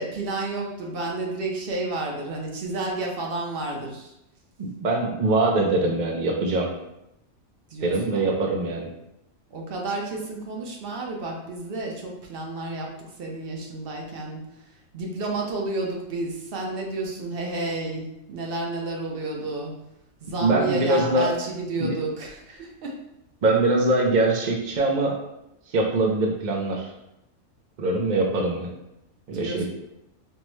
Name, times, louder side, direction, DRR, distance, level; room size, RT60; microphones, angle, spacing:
voice 1, 0.0-4.1 7.7-8.2 9.5-19.7 20.2-23.0 29.3-29.7, right 2 dB, 50° right, 0 dB, 0.8 m, -31 dB
voice 2, 4.6-6.7 7.8-8.9 20.4-21.3 21.8-21.9 23.4-25.2 25.7-26.9 27.8-28.7 29.3-29.7, right 2 dB, 75° right, 0 dB, 0.4 m, -23 dB
5.3 x 2.1 x 3.1 m, 0.86 s
omnidirectional pair, 1.5 m